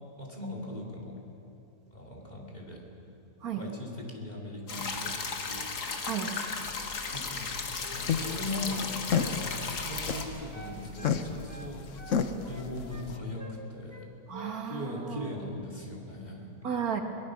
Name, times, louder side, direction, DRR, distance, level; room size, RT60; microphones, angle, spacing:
voice 1, 0.2-1.2 1.9-2.9 3.6-5.7 7.1-7.6 7.9-11.9 12.5-14.1 14.7-16.6, left 1 dB, 25° left, -1 dB, 2.9 m, -39 dB
sound 1, 4.7-10.2, left 4 dB, 85° left, 2.1 m, -35 dB
voice 2, 6.1-6.4 14.3-15.3 16.6-17.0, right 7 dB, 70° right, 4 dB, 1.9 m, -33 dB
sound 2, 6.7-13.2, left 7 dB, 55° left, 1.2 m, -33 dB
Wind instrument woodwind instrument, 7.7-11.2 11.5-13.1 13.4-13.6 13.9-14.5 14.8-15.1, right 1 dB, 10° right, 1.3 m, -48 dB
23.0 x 18.5 x 6.3 m, 2.8 s
omnidirectional pair, 1.7 m